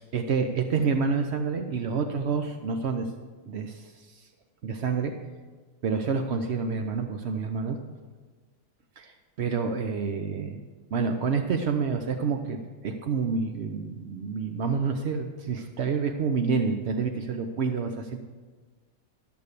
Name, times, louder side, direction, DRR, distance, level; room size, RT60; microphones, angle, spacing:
voice 1, 0.1-3.1 3.5-4.3 4.6-5.1 5.8-7.8 9.0-10.6 10.9-18.2, right 5 dB, 60° right, 5 dB, 0.7 m, -28 dB
13.0 x 7.0 x 6.7 m, 1.4 s
omnidirectional pair, 2.0 m